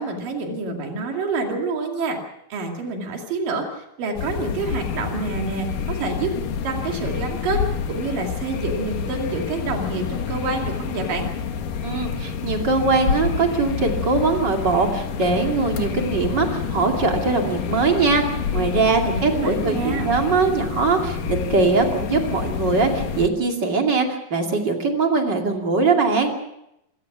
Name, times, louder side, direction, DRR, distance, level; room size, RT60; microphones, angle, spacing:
voice 1, 0.0-2.2 2.5-6.3 6.6-11.3 19.0-20.1, right 3 dB, 85° right, 2 dB, 4.1 m, -27 dB
sound 1, 4.2-23.3, left 6 dB, 80° left, 3.2 m, -28 dB
voice 2, 11.8-26.3, right 4 dB, 35° right, 2 dB, 2.9 m, -21 dB
28.0 x 16.5 x 6.0 m, 0.82 s
omnidirectional pair, 3.8 m